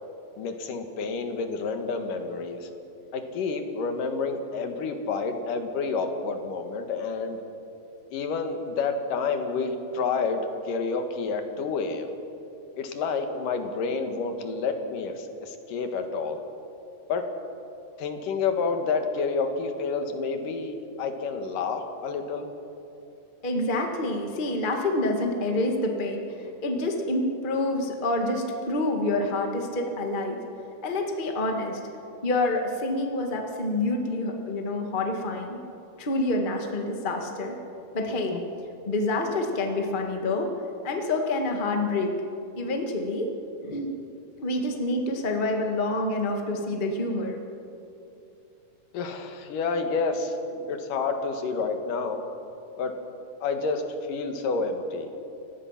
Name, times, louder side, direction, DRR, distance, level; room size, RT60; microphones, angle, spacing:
voice 1, 0.4-2.7 3.1-7.4 8.1-12.1 12.8-16.4 17.1-17.2 18.0-22.5 38.3-38.4 48.9-50.4 50.7-52.2 52.8-52.9 53.4-53.8 54.1-55.1, left 4 dB, 80° left, 6 dB, 3.1 m, -29 dB
voice 2, 23.4-30.4 30.8-31.8 32.2-35.6 36.0-37.6 37.9-38.4 38.8-40.5 40.8-42.1 42.6-43.3 43.6-43.9 44.4-47.4 50.5-50.6, left 2 dB, 20° left, 3 dB, 1.3 m, -27 dB
29.5 x 16.0 x 5.8 m, 2.8 s
omnidirectional pair, 3.8 m